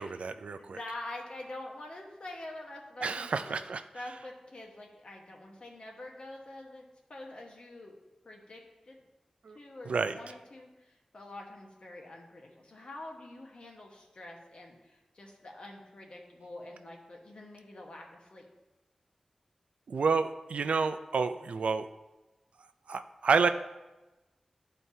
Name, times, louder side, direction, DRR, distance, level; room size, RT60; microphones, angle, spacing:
voice 1, 0.0-0.8 3.0-3.8 9.4-9.6 9.9-10.2 19.9-21.9 22.9-23.5, right 5 dB, 90° right, 9 dB, 0.4 m, -29 dB
voice 2, 0.6-3.6 3.9-8.0 8.2-9.0 9.5-18.5, left 1 dB, 60° left, 0 dB, 1.2 m, -46 dB
12.0 x 4.4 x 2.7 m, 1.1 s
wide cardioid pair, 95°, 2 cm